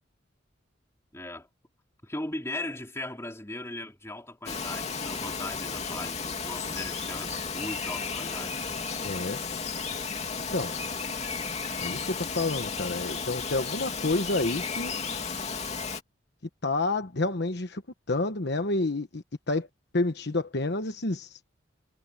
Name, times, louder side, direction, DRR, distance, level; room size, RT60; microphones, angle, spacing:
voice 1, 1.1-1.5 2.0-8.6, left 1 dB, 15° left, 3.6 m, -38 dB
Bird vocalization bird call bird song, 4.5-16.0, left 5 dB, 35° left, 2.8 m, -33 dB
voice 2, 9.0-9.4 10.5-10.7 11.8-14.9 16.6-17.8 18.1-19.7 19.9-21.4, left 2 dB, 60° left, 1.1 m, -29 dB
head